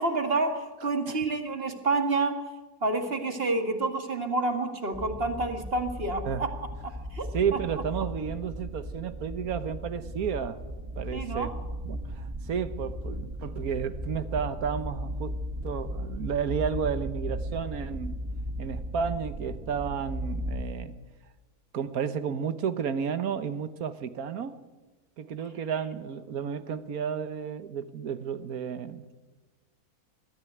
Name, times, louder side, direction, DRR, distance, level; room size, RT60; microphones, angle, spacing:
voice 1, 0.0-2.4 2.8-6.5 7.1-7.3 11.1-11.5, right 3 dB, 40° right, 6 dB, 2.1 m, -28 dB
sound 1, 4.9-20.6, equal, 15° right, 1.2 m, -36 dB
voice 2, 7.3-10.6 11.0-11.5 11.8-18.2 18.6-20.9 21.7-24.6 25.2-29.1, right 7 dB, 70° right, 12 dB, 1.5 m, -32 dB
21.5 x 13.5 x 9.3 m, 1.2 s
omnidirectional pair, 1.6 m